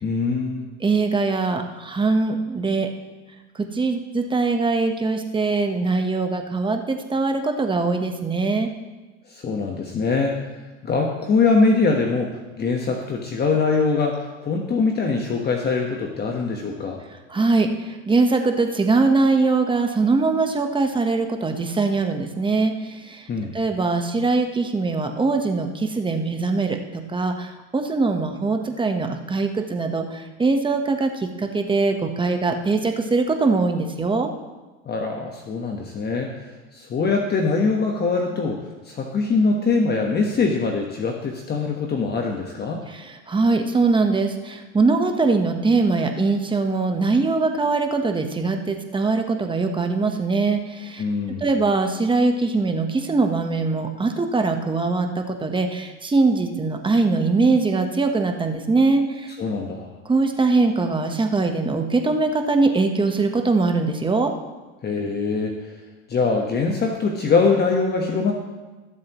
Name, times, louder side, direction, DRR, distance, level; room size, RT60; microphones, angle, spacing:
voice 1, 0.0-0.7 9.3-10.4 10.8-17.0 23.3-23.5 34.9-36.3 36.7-42.8 51.0-51.5 59.4-59.9 64.8-65.5 66.1-68.3, left 4 dB, 25° left, 1 dB, 1.3 m, -23 dB
voice 2, 0.8-2.9 3.7-8.7 17.3-23.2 23.5-34.3 42.9-51.0 51.4-59.3 60.0-64.3, right 3 dB, 15° right, 5 dB, 1.1 m, -22 dB
21.0 x 7.5 x 3.1 m, 1.2 s
supercardioid pair, 105°, 35 cm